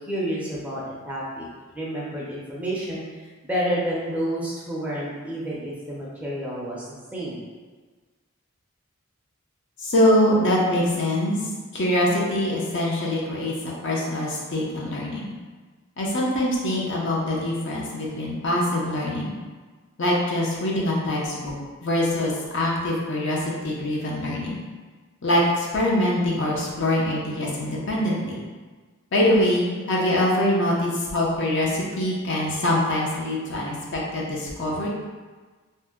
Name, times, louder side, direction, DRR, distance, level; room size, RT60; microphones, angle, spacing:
voice 1, 0.1-1.5 1.7-3.0 3.4-6.8 7.1-7.4, equal, 5° right, -6 dB, 0.4 m, -29 dB
voice 2, 9.8-11.4 11.7-15.3 16.0-19.3 20.0-21.5 21.8-24.6 25.2-28.4 29.1-34.9, left 1 dB, 55° left, -4 dB, 0.6 m, -24 dB
2.7 x 2.0 x 3.5 m, 1.4 s
head